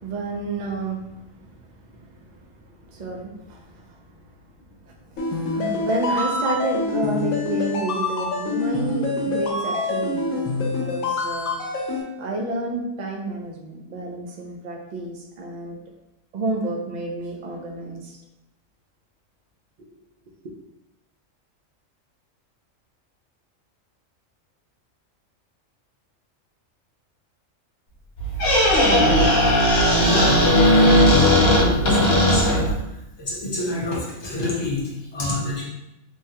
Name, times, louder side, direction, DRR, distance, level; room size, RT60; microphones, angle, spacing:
voice 1, 0.0-1.6 1.8-2.4 2.8-4.0 4.8-11.6 12.2-15.8 16.3-18.2, right 2 dB, 70° right, -1 dB, 0.4 m, -30 dB
sound 1, 5.2-12.0, left 3 dB, 75° left, 1.0 m, -26 dB
Squeak, 28.2-32.8, equal, 55° left, 1.2 m, -17 dB
voice 2, 30.0-32.0 32.3-32.6 33.2-35.6, left 2 dB, 25° left, -6 dB, 0.6 m, -27 dB
3.3 x 2.2 x 2.8 m, 0.91 s
omnidirectional pair, 1.4 m